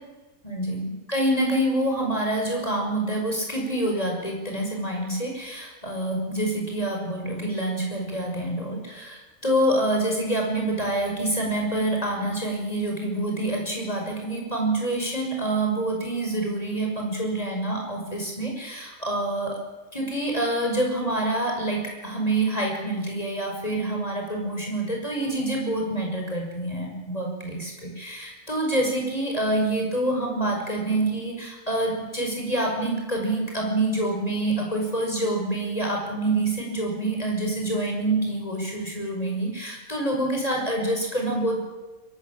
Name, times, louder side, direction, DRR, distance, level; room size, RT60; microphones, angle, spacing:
voice 1, 0.4-19.6 19.9-41.6, right 1 dB, 30° left, 0 dB, 5.9 m, -26 dB
23.0 x 17.5 x 8.8 m, 1.1 s
omnidirectional pair, 1.4 m